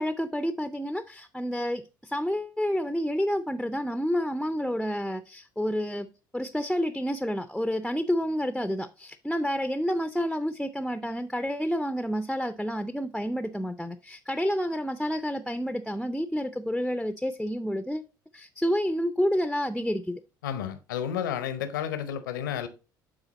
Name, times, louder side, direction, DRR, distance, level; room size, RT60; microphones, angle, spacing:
voice 1, 0.0-6.1 6.3-18.0 18.3-20.2, equal, ahead, 0.5 m, -29 dB
voice 2, 20.4-22.7, left 9 dB, 75° left, 0.8 m, -31 dB
8.8 x 3.9 x 4.0 m
figure-of-eight pair, 60°, 11 cm